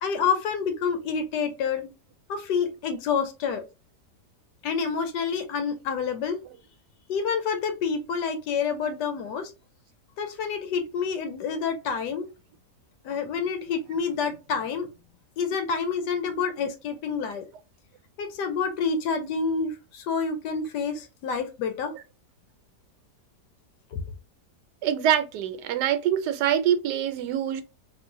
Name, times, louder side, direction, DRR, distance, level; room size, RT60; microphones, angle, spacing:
voice 1, 0.0-1.9 2.3-3.6 4.6-6.4 7.1-9.5 10.2-12.3 13.0-14.9 15.4-17.4 18.2-21.9 23.9-24.0, left 6 dB, 85° left, 1.3 m, -28 dB
voice 2, 24.8-27.6, right 10 dB, 80° right, 1.2 m, -24 dB
3.8 x 2.5 x 2.5 m
omnidirectional pair, 1.8 m